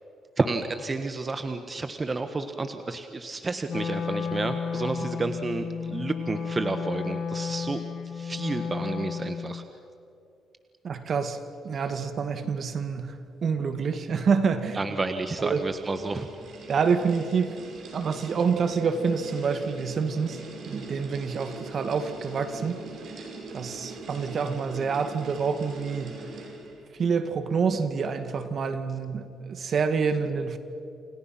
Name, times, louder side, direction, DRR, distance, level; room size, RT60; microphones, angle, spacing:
voice 1, 0.4-7.8 8.1-9.6 11.7-11.8 14.7-16.3, right 3 dB, 30° right, 8 dB, 1.4 m, -30 dB
Wind instrument woodwind instrument, 3.7-9.7, left 6 dB, 60° left, 2.0 m, -32 dB
voice 2, 10.8-11.4 11.6-14.8 15.4-15.6 16.7-17.6 17.9-20.4 20.7-22.8 23.5-26.2 27.0-30.6, right 5 dB, 55° right, 9 dB, 2.1 m, -27 dB
sound 1, 14.8-26.9, right 3 dB, 70° right, 5.9 m, -43 dB
29.0 x 28.0 x 6.0 m, 2.5 s
cardioid pair, 90°, 0 cm